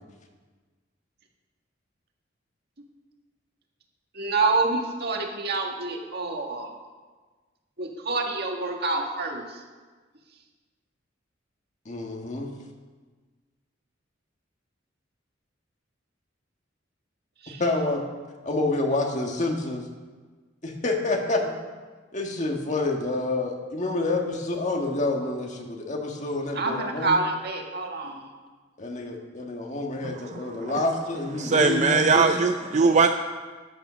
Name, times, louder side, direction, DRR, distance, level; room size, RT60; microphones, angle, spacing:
voice 1, 4.1-6.7 7.8-9.6 17.4-17.6 26.5-28.2, right 3 dB, 55° right, 1 dB, 1.8 m, -27 dB
voice 2, 11.8-12.5 17.6-18.0 18.4-19.9 20.6-21.5 22.1-27.2 28.8-32.3, left 2 dB, 40° left, 2 dB, 1.7 m, -28 dB
voice 3, 30.3-30.7 31.4-33.1, right 4 dB, 40° right, 6 dB, 0.5 m, -21 dB
13.5 x 9.0 x 6.3 m, 1.4 s
head